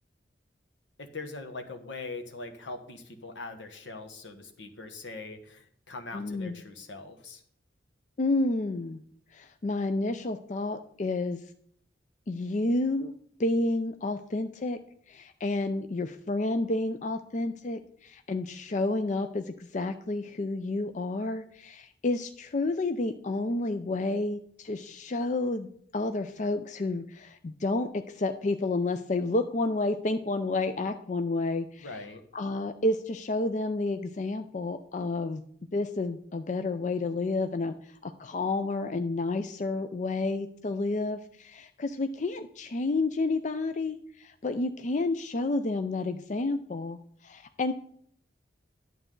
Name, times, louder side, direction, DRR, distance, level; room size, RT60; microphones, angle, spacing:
voice 1, 1.0-7.4 31.8-32.2, left 3 dB, 80° left, 6 dB, 1.3 m, -42 dB
voice 2, 6.1-6.6 8.2-9.0 9.3-11.4 12.3-13.1 13.4-14.8 15.1-19.4 19.7-31.9 32.3-35.4 35.7-47.7, left 2 dB, 40° left, 8 dB, 0.4 m, -30 dB
11.5 x 7.9 x 3.8 m, 0.65 s
head